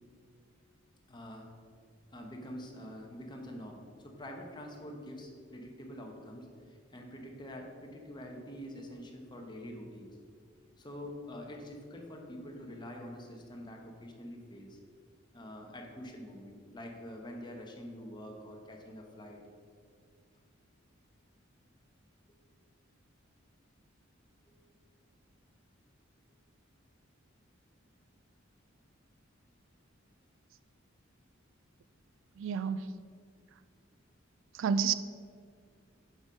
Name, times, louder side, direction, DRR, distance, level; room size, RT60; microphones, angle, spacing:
voice 1, 1.1-1.5 2.1-10.2 10.8-14.8 15.3-19.4 24.5-24.6, equal, 25° left, 1 dB, 1.0 m, -46 dB
voice 2, 32.4-32.9 34.5-34.9, right 6 dB, 65° right, 14 dB, 0.3 m, -30 dB
7.1 x 5.4 x 5.1 m, 2.1 s
head